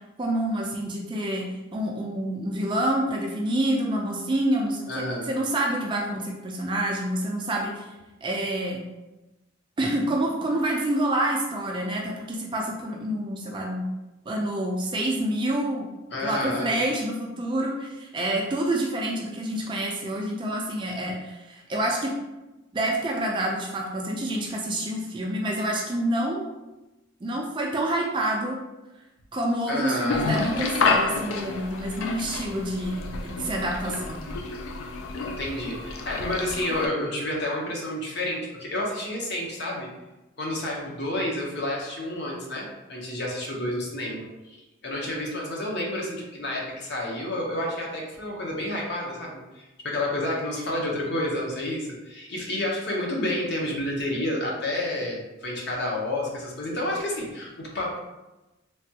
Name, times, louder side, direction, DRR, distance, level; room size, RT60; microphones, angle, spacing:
voice 1, 0.2-1.5 1.7-7.9 8.2-8.8 9.8-13.9 14.3-15.9 16.2-22.2 22.7-26.5 27.2-28.6 29.3-34.2, right 1 dB, 25° right, -1 dB, 0.3 m, -27 dB
voice 2, 4.9-5.3 16.1-16.8 29.7-30.3 35.4-39.9 40.4-44.6 44.8-58.0, left 1 dB, 55° left, -2 dB, 0.7 m, -30 dB
sound 1, 30.1-36.9, left 3 dB, 80° left, 0.4 m, -29 dB
3.2 x 2.2 x 2.7 m, 1.0 s
head